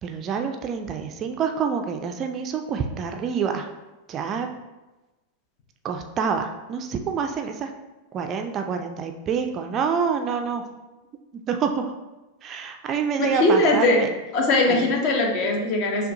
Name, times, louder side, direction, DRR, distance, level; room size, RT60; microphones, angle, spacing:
voice 1, 0.0-3.7 4.1-4.5 5.8-7.7 8.1-10.6 11.5-11.9 12.4-14.1 14.7-14.9, right 6 dB, 30° right, 5 dB, 0.3 m, -27 dB
voice 2, 13.2-14.0 14.3-16.1, left 2 dB, 40° left, 2 dB, 0.7 m, -20 dB
6.1 x 2.3 x 2.7 m, 1.1 s
figure-of-eight pair, 90°, 0 cm